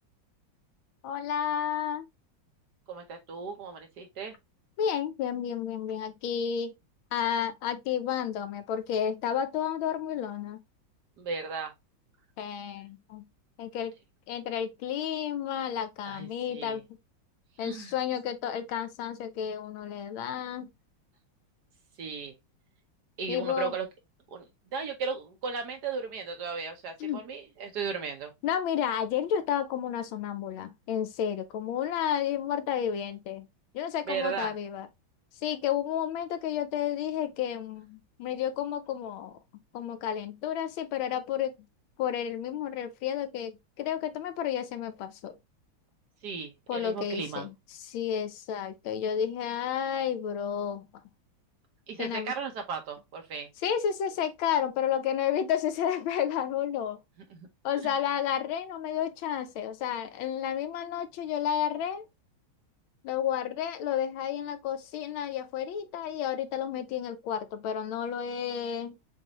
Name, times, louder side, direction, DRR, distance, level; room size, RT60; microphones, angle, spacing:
voice 1, 1.0-2.0 4.8-6.7 7.1-10.6 12.4-13.2 13.6-13.9 14.3-16.8 17.6-20.7 23.3-23.7 27.0-27.2 28.4-33.5 33.7-34.9 35.4-39.4 39.7-41.6 42.0-45.4 46.7-50.9 52.0-52.3 53.6-57.0 57.6-62.0 63.0-69.0, left 9 dB, 85° left, 1.5 m, -31 dB
voice 2, 2.9-4.3 11.2-11.7 16.1-16.8 17.6-17.9 22.0-22.3 23.2-23.8 24.3-24.5 24.7-28.3 34.1-34.5 46.2-47.5 51.9-53.5 57.3-57.5, right 5 dB, 60° right, 1.3 m, -35 dB
6.4 x 2.6 x 3.0 m
omnidirectional pair, 2.2 m